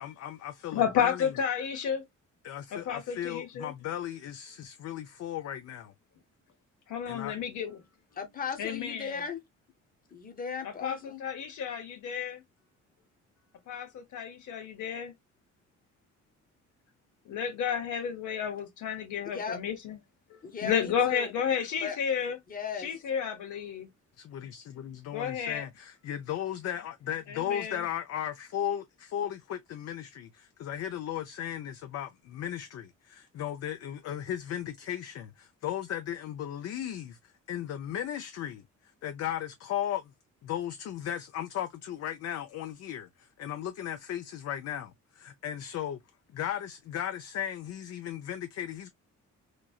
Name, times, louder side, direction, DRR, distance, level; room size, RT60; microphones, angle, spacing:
voice 1, 0.0-1.3 2.4-5.9 7.1-7.4 24.2-37.2 37.5-38.6 39.0-40.1 40.4-46.0 46.3-48.9, left 10 dB, 55° left, 0.4 m, -36 dB
voice 2, 0.7-2.0 2.7-3.7 6.9-7.8 8.6-9.2 10.6-12.4 13.7-15.1 17.3-20.0 20.3-22.4 22.8-23.9 25.1-25.7 27.3-27.8, left 8 dB, 75° left, 1.0 m, -32 dB
voice 3, 8.2-9.4 10.1-11.2 19.3-19.6 20.4-21.3 21.8-22.0 22.5-22.9, left 6 dB, 30° left, 0.8 m, -37 dB
2.9 x 2.6 x 2.3 m
cardioid pair, 90°, 30 cm